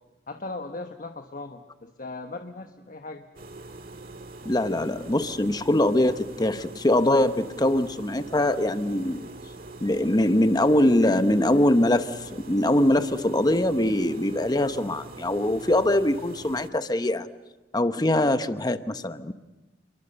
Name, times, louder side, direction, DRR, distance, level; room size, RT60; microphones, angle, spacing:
voice 1, 0.3-3.2, left 2 dB, 50° left, 6 dB, 1.2 m, -38 dB
sound 1, 3.4-16.7, right 2 dB, 55° right, 1.8 m, -43 dB
voice 2, 4.4-9.3 9.8-17.3 17.7-19.3, left 1 dB, 20° left, 10 dB, 0.9 m, -23 dB
29.0 x 23.0 x 6.9 m, 1.1 s
head